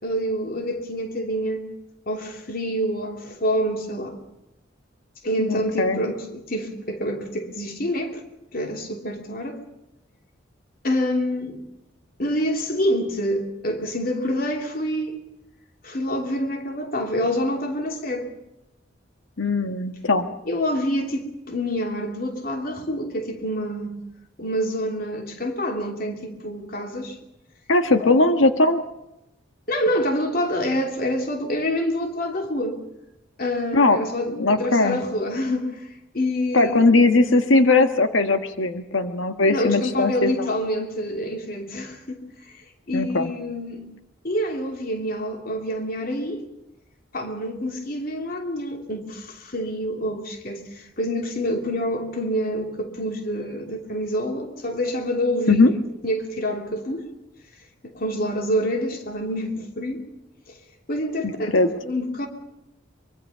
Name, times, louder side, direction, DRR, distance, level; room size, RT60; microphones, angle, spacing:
voice 1, 0.0-1.7 2.1-4.2 5.2-8.2 8.5-9.6 10.8-11.6 12.2-15.2 15.8-18.3 20.5-24.0 24.4-27.2 27.9-28.1 29.7-32.8 33.4-36.8 39.5-42.2 42.5-42.6 42.9-43.9 44.2-46.5 47.1-55.6 56.0-57.1 57.8-60.0 60.5-60.6 60.9-62.3, equal, 50° left, 3.0 m, -27 dB
voice 2, 5.4-6.0 19.4-20.3 27.7-28.8 33.7-34.0 34.3-35.0 36.5-40.3 42.9-43.3 55.5-55.7 61.2-61.7, left 2 dB, 80° left, 1.5 m, -19 dB
24.0 x 23.5 x 5.7 m
head